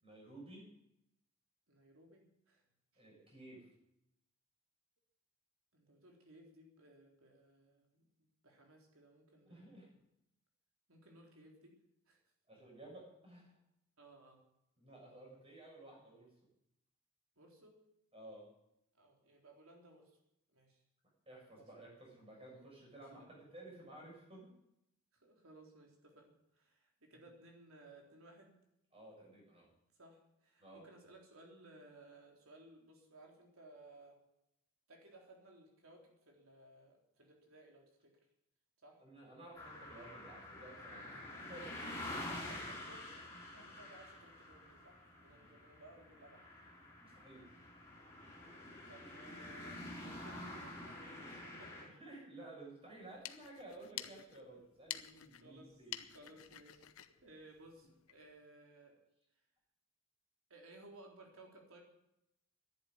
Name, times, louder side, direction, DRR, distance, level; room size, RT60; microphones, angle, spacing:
voice 1, 0.0-0.7 3.0-3.7 9.5-9.9 12.5-13.5 14.8-16.3 18.1-18.5 21.3-24.5 27.1-27.2 28.9-29.7 30.6-30.9 39.0-41.2 41.5-42.0 43.5-43.6 45.4-45.5 47.0-47.5 51.9-55.9, right 2 dB, 25° right, -2 dB, 7.1 m, -54 dB
voice 2, 1.7-2.6 2.9-3.1 5.7-10.0 10.9-11.8 12.1-12.2 14.0-14.4 17.4-17.8 18.9-20.2 20.5-20.8 21.5-21.9 23.0-23.4 25.1-28.6 30.0-34.2 34.9-38.2 38.8-39.0 42.3-46.4 48.9-52.0 54.1-54.3 55.4-55.8 56.1-56.9 57.2-59.0 60.5-61.8, right 1 dB, 70° right, 1 dB, 3.9 m, -60 dB
sound 1, 39.6-51.8, left 1 dB, 15° left, 4.2 m, -48 dB
sound 2, 52.9-58.3, left 12 dB, 75° left, 0.8 m, -50 dB
11.0 x 11.0 x 9.9 m, 0.82 s
head